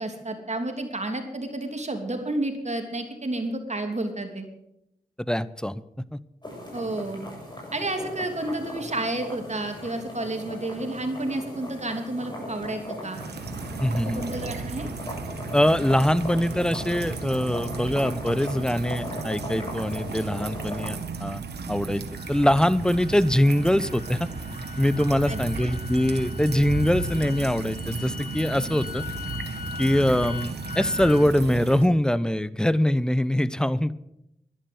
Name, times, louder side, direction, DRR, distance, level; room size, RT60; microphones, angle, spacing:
voice 1, 0.0-4.5 6.7-7.2 7.7-13.2 14.1-14.9 25.3-25.7, right 2 dB, 45° right, 5 dB, 3.1 m, -31 dB
voice 2, 5.3-5.8 6.1-6.2 13.8-14.3 15.5-21.4 21.7-22.0 22.3-24.2 24.8-29.0 29.8-33.9, left 1 dB, 5° left, 18 dB, 0.8 m, -23 dB
sound 1, 6.4-20.9, left 1 dB, 25° left, 7.2 m, -38 dB
sound 2, 13.1-31.9, right 3 dB, 85° right, 1.5 m, -34 dB
sound 3, 22.1-31.3, left 6 dB, 60° left, 1.5 m, -41 dB
11.5 x 11.0 x 7.8 m, 0.82 s
cardioid pair, 40°, 17 cm